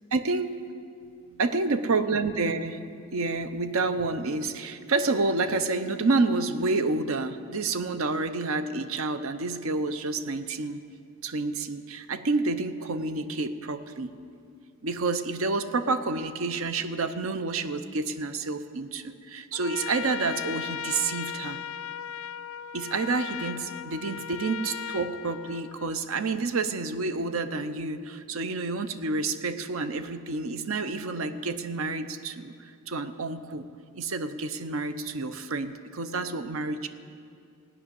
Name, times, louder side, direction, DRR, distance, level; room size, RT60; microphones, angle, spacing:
voice 1, 0.1-0.6 1.3-2.8 3.1-10.8 11.2-14.1 14.8-21.6 22.7-33.7 33.9-36.9, right 3 dB, 65° right, 11 dB, 0.7 m, -29 dB
Trumpet, 19.5-26.1, left 8 dB, 60° left, 0.4 m, -37 dB
17.0 x 6.2 x 9.7 m, 2.4 s
head